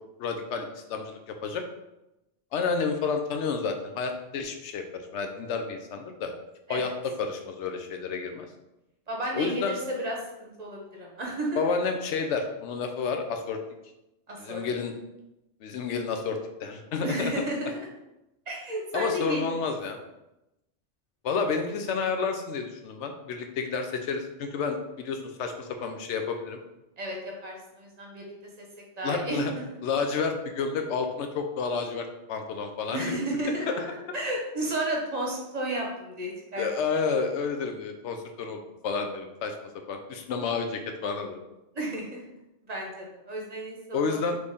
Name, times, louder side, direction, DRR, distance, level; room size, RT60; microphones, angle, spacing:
voice 1, 0.2-1.6 2.5-6.3 6.7-8.5 9.3-9.8 11.6-13.6 14.4-14.9 15.6-17.3 18.9-20.0 21.2-26.6 29.0-29.5 29.8-33.2 33.7-33.9 36.6-39.6 39.9-41.4 43.9-44.4, left 5 dB, 80° left, 5 dB, 0.9 m, -30 dB
voice 2, 9.1-11.6 14.3-14.6 17.0-17.9 18.5-19.7 27.0-28.3 29.0-29.4 29.7-29.8 32.9-33.7 34.1-36.7 41.7-42.2 42.7-44.2, right 1 dB, 40° right, -1 dB, 0.9 m, -32 dB
4.0 x 3.2 x 3.5 m, 0.93 s
omnidirectional pair, 1.2 m